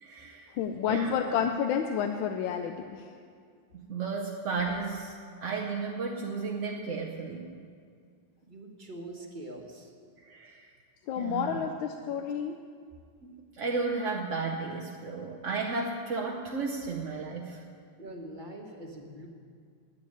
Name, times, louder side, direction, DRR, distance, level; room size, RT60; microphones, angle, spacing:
voice 1, 0.0-0.5 0.8-1.2 3.7-7.5 10.2-10.8 11.2-11.6 13.2-17.6, right 4 dB, 50° right, 0 dB, 1.0 m, -34 dB
voice 2, 0.6-3.1 11.1-12.5, left 7 dB, 90° left, 5 dB, 1.4 m, -30 dB
voice 3, 8.4-9.9 18.0-19.3, right 1 dB, 25° right, 1 dB, 1.4 m, -43 dB
10.0 x 8.8 x 9.9 m, 2.2 s
omnidirectional pair, 2.1 m